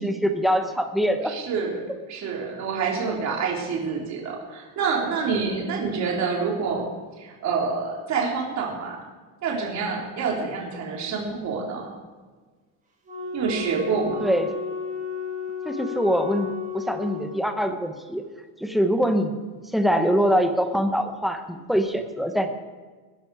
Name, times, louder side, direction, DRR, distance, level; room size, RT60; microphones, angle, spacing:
voice 1, 0.0-1.3 5.7-6.0 14.2-14.5 15.6-18.2 18.6-19.4 19.7-22.5, equal, ahead, 6 dB, 0.7 m, -24 dB
voice 2, 1.2-1.8 2.1-6.9 7.2-9.0 9.4-11.9 13.3-14.3, right 5 dB, 35° right, -2 dB, 3.6 m, -27 dB
Wind instrument woodwind instrument, 13.1-17.4, left 5 dB, 15° right, 3.6 m, -33 dB
20.5 x 10.0 x 4.8 m, 1.4 s
cardioid pair, 180°, 46 cm